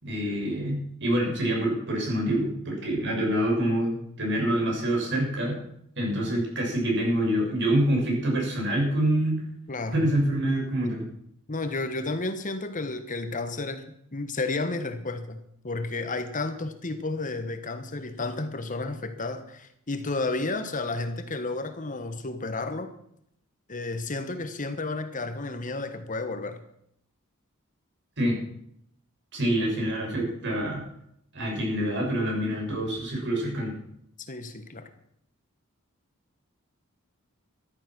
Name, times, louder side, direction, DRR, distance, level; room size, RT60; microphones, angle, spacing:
voice 1, 0.0-5.6 6.0-9.4 9.9-11.0 28.2-28.4 29.3-30.8 31.3-33.8, right 1 dB, 55° right, -1 dB, 6.8 m, -26 dB
voice 2, 9.7-10.1 11.5-15.4 15.6-22.9 23.7-26.6 34.2-34.9, left 3 dB, 35° left, 9 dB, 1.3 m, -32 dB
14.0 x 12.5 x 6.1 m, 0.72 s
head